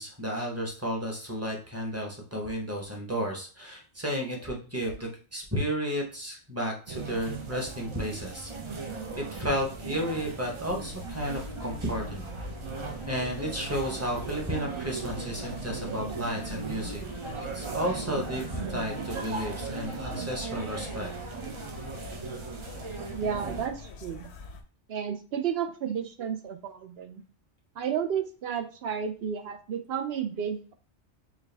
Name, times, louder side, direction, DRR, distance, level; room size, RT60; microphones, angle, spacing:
voice 1, 0.0-8.8 9.2-12.3 13.1-17.0 17.4-21.1, equal, 15° right, 0 dB, 0.8 m, -33 dB
sound 1, 6.9-23.7, right 4 dB, 40° right, 0.4 m, -38 dB
sound 2, 10.6-24.6, left 4 dB, 65° left, 0.9 m, -44 dB
voice 2, 23.2-24.3 24.9-27.2 27.7-30.7, right 8 dB, 65° right, 8 dB, 0.8 m, -32 dB
4.8 x 2.3 x 3.3 m, 0.38 s
omnidirectional pair, 1.2 m